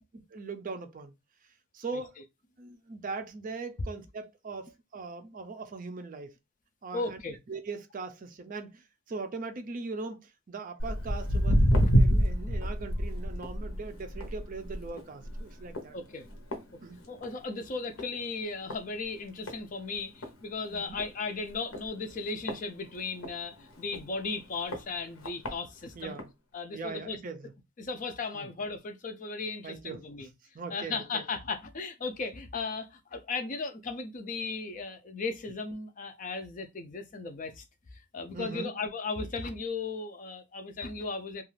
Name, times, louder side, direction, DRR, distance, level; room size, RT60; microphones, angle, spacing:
voice 1, 0.3-1.1 1.7-2.2 2.6-6.3 6.8-7.2 7.5-16.0 16.8-17.0 25.9-26.3 26.7-27.5 28.3-28.5 29.6-30.3 30.5-31.2 38.3-38.7, right 4 dB, 40° right, 0.4 m, -40 dB
voice 2, 6.9-7.4 15.9-16.3 17.1-26.2 26.5-27.2 27.8-30.3 30.7-37.6 37.9-41.4, left 4 dB, 35° left, 0.4 m, -36 dB
Walk footsteps, 10.8-17.5 17.8-18.1 18.7-18.8 19.5-19.6 19.9-20.0 20.2-20.3 20.9-21.1 21.7-23.3 23.9-24.0 24.7-24.8 25.2-25.5 26.2-26.3, equal, 70° left, 0.8 m, -27 dB
2.4 x 2.3 x 3.1 m
head